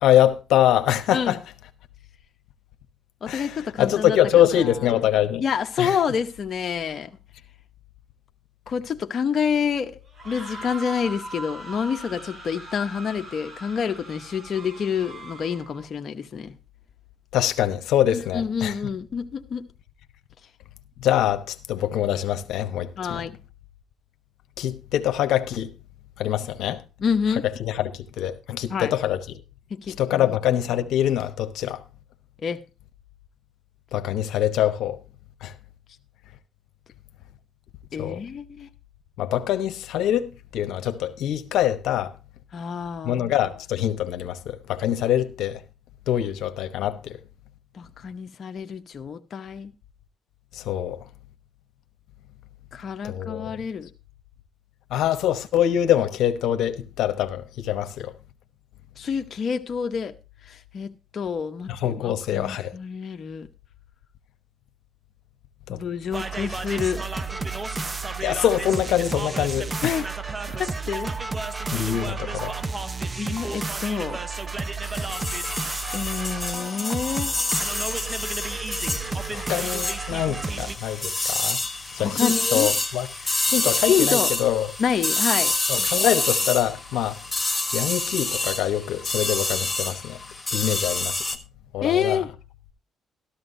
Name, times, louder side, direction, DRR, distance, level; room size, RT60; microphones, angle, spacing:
voice 1, 0.0-1.4 3.3-5.4 5.8-6.0 17.3-18.8 21.0-23.3 24.6-25.7 26.2-26.8 27.4-29.4 30.0-31.8 33.9-35.0 35.4-35.5 38.0-38.2 39.2-42.1 43.0-45.6 46.1-47.2 50.5-51.0 53.0-53.6 54.9-58.1 61.7-62.7 65.7-65.8 68.2-70.0 71.7-72.5 79.3-81.6 81.9-84.7 85.7-87.2 87.7-90.2 90.5-91.2 91.7-92.2, left 11 dB, 85° left, 1.0 m, -24 dB
voice 2, 3.2-4.6 5.4-7.1 8.7-10.0 10.2-16.5 18.1-19.7 23.0-23.3 27.0-27.4 28.7-28.9 29.7-30.3 32.4-32.6 37.9-38.7 42.5-43.3 47.7-49.7 52.7-53.9 59.0-60.1 60.5-63.5 65.7-67.0 69.8-70.1 70.5-71.1 73.2-74.2 75.9-77.3 82.0-82.7 83.9-84.3 84.8-85.9 91.8-92.3, left 7 dB, 50° left, 0.9 m, -28 dB
sound 1, 10.1-15.8, right 2 dB, 50° right, 5.3 m, -40 dB
sound 2, 66.1-80.8, right 3 dB, 25° right, 0.8 m, -31 dB
sound 3, 74.8-91.4, left 2 dB, 10° left, 1.4 m, -27 dB
13.0 x 13.0 x 2.6 m
cardioid pair, 90°, 0 cm